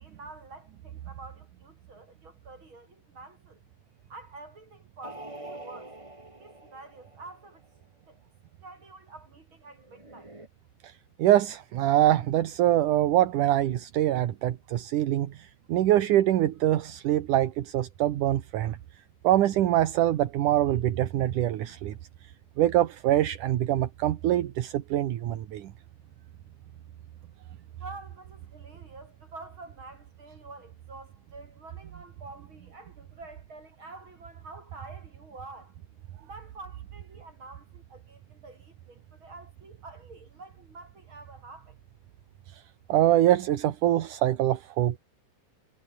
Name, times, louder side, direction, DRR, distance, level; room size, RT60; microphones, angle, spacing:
voice 1, 0.0-3.6 4.1-5.9 6.4-7.6 8.1-8.2 8.6-10.3 27.8-35.7 36.2-41.8, right 3 dB, 35° right, 8.2 m, -48 dB
sound 1, 5.0-7.6 9.8-10.5, right 2 dB, 10° right, 2.1 m, -45 dB
voice 2, 11.2-18.8 19.2-21.9 22.6-25.7 42.9-45.0, right 13 dB, 75° right, 2.8 m, -24 dB
omnidirectional pair, 3.7 m